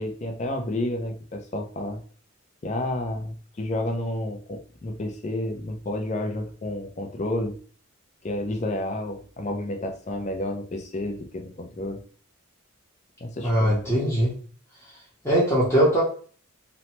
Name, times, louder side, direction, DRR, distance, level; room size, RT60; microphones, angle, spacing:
voice 1, 0.0-2.0 2.6-7.6 8.2-12.0 13.2-13.8, left 1 dB, 30° left, 4 dB, 0.4 m, -30 dB
voice 2, 13.4-14.3 15.2-16.0, equal, 10° left, -7 dB, 0.8 m, -21 dB
3.0 x 2.1 x 2.9 m, 0.43 s
head